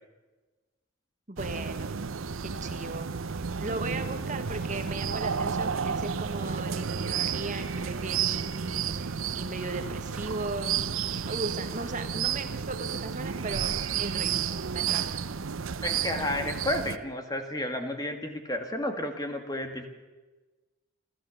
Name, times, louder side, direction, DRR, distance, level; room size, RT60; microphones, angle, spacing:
voice 1, 1.3-2.0 2.4-10.8 11.2-15.2, right 2 dB, 35° right, 7 dB, 1.4 m, -37 dB
sound 1, 1.4-17.0, right 7 dB, 80° right, 0.7 m, -31 dB
voice 2, 15.8-19.9, left 1 dB, 20° left, 6 dB, 1.8 m, -32 dB
29.5 x 13.0 x 7.0 m, 1.2 s
head